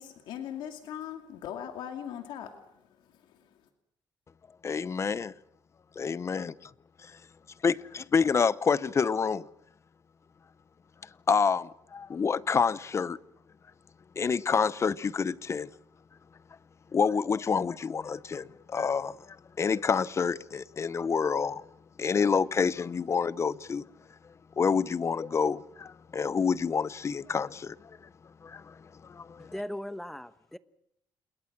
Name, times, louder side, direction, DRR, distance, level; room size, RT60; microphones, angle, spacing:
voice 1, 0.0-2.7, left 9 dB, 90° left, 2.4 m, -39 dB
voice 2, 4.6-5.3 6.0-6.7 7.6-9.5 11.3-13.2 14.2-15.7 16.9-19.2 19.6-21.6 22.0-23.8 24.6-27.7 28.4-28.7 29.0-29.5, left 5 dB, 35° left, 0.8 m, -28 dB
voice 3, 29.4-30.6, left 1 dB, 5° left, 1.2 m, -38 dB
28.0 x 22.0 x 6.1 m
cardioid pair, 100°, 8 cm